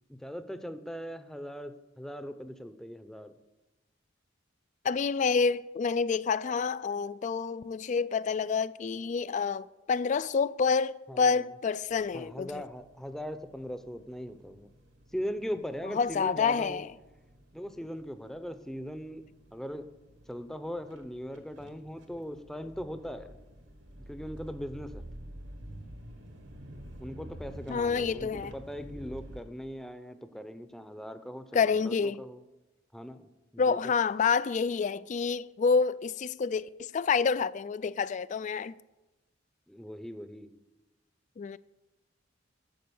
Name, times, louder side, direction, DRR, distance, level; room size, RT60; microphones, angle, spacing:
voice 1, 0.1-3.3 11.1-11.4 12.1-14.7 15.1-16.8 17.5-19.2 19.5-19.9 20.3-23.4 24.1-25.0 27.0-32.4 32.9-33.8 39.7-40.5, equal, ahead, 0.6 m, -40 dB
voice 2, 4.8-12.6 15.9-16.9 27.7-28.5 31.5-32.2 33.6-38.7 41.4-41.6, left 5 dB, 40° left, 0.3 m, -28 dB
sound 1, 11.9-29.4, equal, 70° right, 1.6 m, -50 dB
12.0 x 7.4 x 7.0 m
head